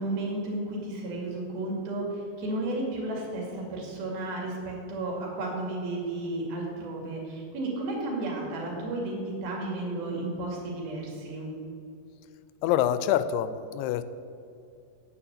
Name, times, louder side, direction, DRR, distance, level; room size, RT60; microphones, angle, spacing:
voice 1, 0.0-11.5, right 2 dB, 70° right, -1 dB, 4.3 m, -33 dB
voice 2, 12.6-14.0, left 11 dB, 85° left, 12 dB, 2.6 m, -26 dB
9.8 x 8.5 x 8.9 m, 2.5 s
omnidirectional pair, 4.7 m